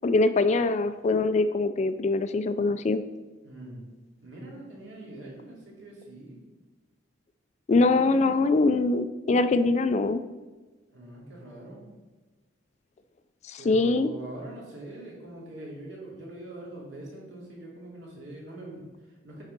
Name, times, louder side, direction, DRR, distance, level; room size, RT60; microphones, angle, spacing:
voice 1, 0.0-3.0 7.7-10.2 13.4-14.1, left 3 dB, 35° left, 11 dB, 0.3 m, -23 dB
voice 2, 3.4-3.8 4.2-6.4 10.9-11.8 13.6-19.4, right 1 dB, 65° right, -4 dB, 2.7 m, -43 dB
9.5 x 4.1 x 5.2 m, 1.3 s
head